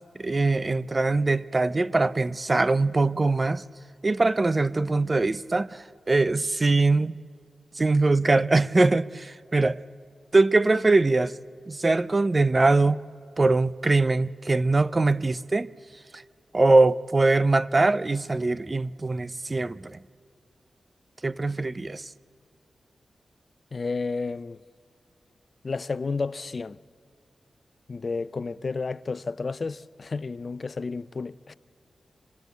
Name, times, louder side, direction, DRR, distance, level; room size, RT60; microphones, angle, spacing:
voice 1, 0.2-3.6 4.0-7.2 7.8-9.8 10.3-11.3 11.7-13.0 13.4-15.7 16.1-16.2 16.5-20.0 21.2-22.1, right 3 dB, 40° right, 0.6 m, -22 dB
voice 2, 23.7-24.6 25.6-26.8 27.9-31.5, left 4 dB, 55° left, 0.5 m, -31 dB
26.5 x 18.0 x 8.1 m
cardioid pair, 50°, 0 cm